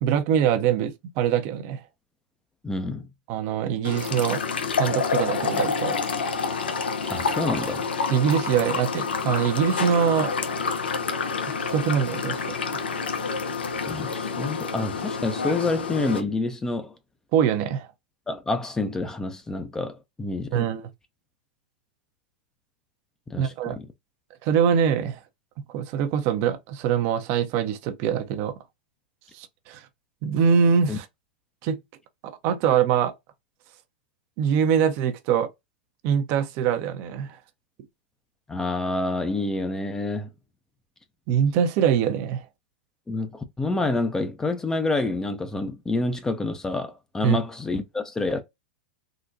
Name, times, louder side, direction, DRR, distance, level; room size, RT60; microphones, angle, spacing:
voice 1, 0.0-1.8 3.3-4.4 4.8-6.0 8.1-10.3 11.6-12.4 12.7-12.9 17.3-17.9 20.5-20.9 23.4-23.8 24.4-25.2 25.6-28.5 29.3-29.8 30.2-31.1 31.6-31.8 32.2-33.1 34.4-35.5 36.0-37.4 41.3-42.4 47.2-47.4, right 8 dB, 45° right, 0.6 m, -23 dB
voice 2, 2.6-3.0 7.1-7.9 13.8-16.9 18.3-20.7 23.3-23.9 30.9-31.0 38.5-40.3 43.1-48.4, left 2 dB, 10° left, 0.5 m, -28 dB
sound 1, 3.8-16.2, left 5 dB, 90° left, 0.6 m, -28 dB
3.8 x 2.2 x 2.6 m
hypercardioid pair, 115°, 5 cm